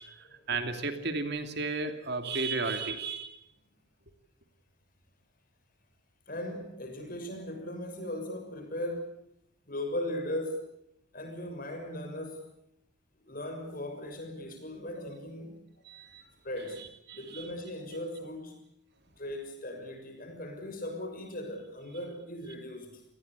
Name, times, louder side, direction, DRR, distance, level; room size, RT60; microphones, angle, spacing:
voice 1, 0.0-3.4 15.9-16.2 16.8-17.4, right 3 dB, 50° right, 7 dB, 2.7 m, -34 dB
voice 2, 6.3-9.1 9.6-10.7 11.1-12.5 13.2-15.9 16.4-16.9 17.1-18.6 19.2-23.0, left 1 dB, 40° left, 4 dB, 6.4 m, -38 dB
28.0 x 19.5 x 8.3 m, 0.77 s
head